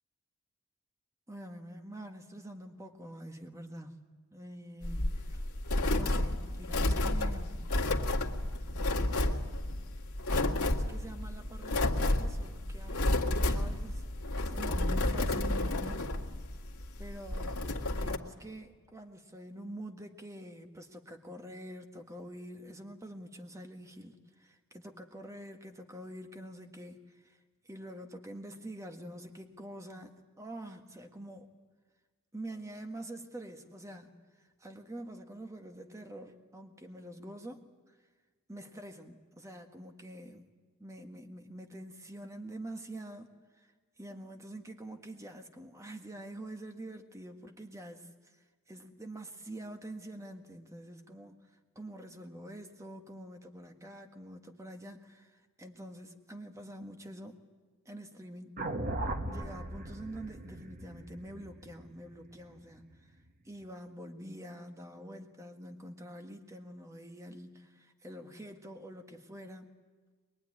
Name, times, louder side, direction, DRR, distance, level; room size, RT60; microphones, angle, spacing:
voice 1, 1.3-4.0 4.3-5.4 5.9-7.7 8.7-9.5 10.3-16.1 17.0-27.4 27.6-31.5 32.3-34.1 34.4-37.6 38.5-40.5 40.8-43.3 43.6-43.7 44.0-48.3 48.7-51.4 51.7-57.4 57.8-58.7 59.2-63.1 63.4-69.7, right 1 dB, 15° right, 5 dB, 1.6 m, -46 dB
sound 1, 4.8-18.2, left 1 dB, 85° left, 1.9 m, -31 dB
sound 2, 58.6-62.8, right 1 dB, 40° right, 1.4 m, -38 dB
23.0 x 22.0 x 9.7 m, 1.4 s
head